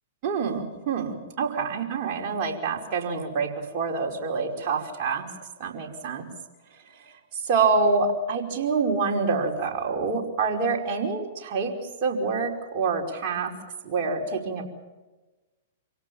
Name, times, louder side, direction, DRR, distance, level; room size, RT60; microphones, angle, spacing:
voice 1, 0.2-5.3 5.6-6.3 6.9-11.7 12.0-13.5 13.8-14.6, right 4 dB, 40° right, 0 dB, 5.2 m, -26 dB
28.0 x 17.5 x 7.2 m, 1.2 s
hypercardioid pair, 110°, 0 cm